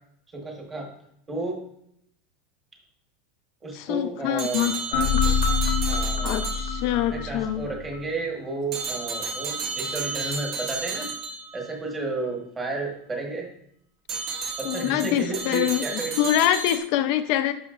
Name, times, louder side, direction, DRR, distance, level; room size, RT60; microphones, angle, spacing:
voice 1, 0.3-0.9 1.3-1.6 3.6-5.1 5.8-6.6 6.9-11.1 11.5-13.5 14.6-16.2, right 3 dB, 15° right, -1 dB, 1.3 m, -32 dB
voice 2, 3.7-5.2 6.2-7.7 14.6-17.5, left 11 dB, 45° left, 9 dB, 0.6 m, -25 dB
sound 1, 4.4-7.2 8.7-11.6 14.1-16.8, right 4 dB, 35° right, 0.9 m, -32 dB
sound 2, 4.9-8.0, left 5 dB, 70° left, 1.1 m, -25 dB
11.5 x 5.6 x 2.5 m, 0.74 s
supercardioid pair, 175°, 0 cm